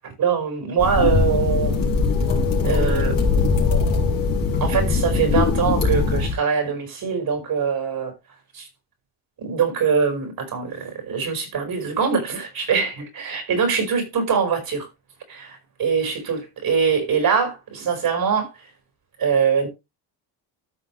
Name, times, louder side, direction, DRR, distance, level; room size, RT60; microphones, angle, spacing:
voice 1, 0.0-1.9 2.6-3.6 4.6-8.1 8.5-8.7 9.4-14.9 15.3-18.5 19.2-19.7, right 6 dB, 60° right, 4.9 m, -23 dB
sound 1, 0.8-6.3, left 4 dB, 55° left, 3.9 m, -20 dB
13.5 x 5.9 x 3.2 m
cardioid pair, 105°, 42 cm